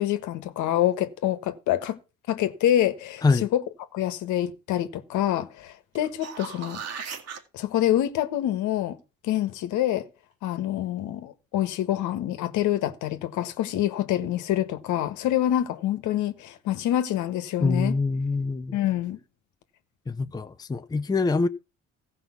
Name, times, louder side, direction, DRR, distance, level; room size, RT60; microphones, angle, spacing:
voice 1, 0.0-2.0 2.3-3.6 3.9-6.8 7.5-9.0 9.2-10.0 10.4-18.0 18.7-19.2, left 12 dB, 80° left, 1.5 m, -26 dB
sound 1, 5.9-7.4 12.2-12.3, right 6 dB, 55° right, 2.3 m, -37 dB
voice 2, 17.6-18.8 20.1-21.5, left 3 dB, 15° left, 0.6 m, -24 dB
15.0 x 5.5 x 5.9 m
cardioid pair, 115°, 30 cm